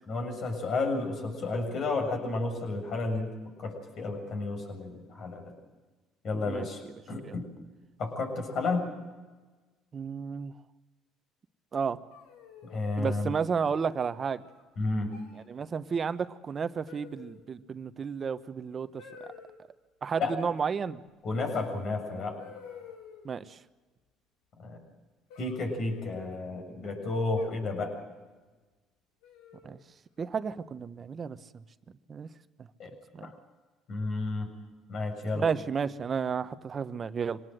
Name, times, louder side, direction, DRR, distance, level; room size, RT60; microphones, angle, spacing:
voice 1, 0.1-3.3 3.6-5.4 6.2-7.5 8.0-8.9 12.6-13.3 14.8-15.1 20.2-20.3 21.2-22.4 24.6-24.8 25.4-28.0 32.8-32.9 33.2-33.3 33.9-34.5 34.9-35.5, left 3 dB, 55° left, 4 dB, 7.0 m, -32 dB
voice 2, 9.9-10.5 11.7-12.0 13.0-14.4 15.5-19.3 20.0-21.0 23.2-23.6 29.6-29.8 30.2-31.4 32.1-32.3 33.1-33.3 35.3-37.4, right 6 dB, 40° right, 12 dB, 1.1 m, -32 dB
sound 1, 12.1-13.0 14.2-14.6 15.1-15.4 16.9-17.5 19.0-19.6 21.5-21.6 22.4-23.4 25.3-26.4 27.4-28.0 29.2-29.8, left 7 dB, 85° left, 3.2 m, -50 dB
24.5 x 18.5 x 7.8 m, 1.3 s
supercardioid pair, 75°, 0 cm